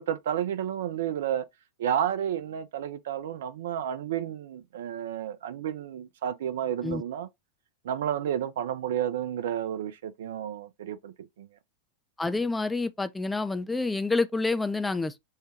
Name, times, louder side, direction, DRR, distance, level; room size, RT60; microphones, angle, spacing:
voice 1, 0.0-1.4 1.8-7.3 7.8-11.5, right 10 dB, 60° right, 0.4 m, -31 dB
voice 2, 12.2-15.2, left 3 dB, 10° left, 0.3 m, -28 dB
5.5 x 2.2 x 2.8 m
figure-of-eight pair, 90°, 0 cm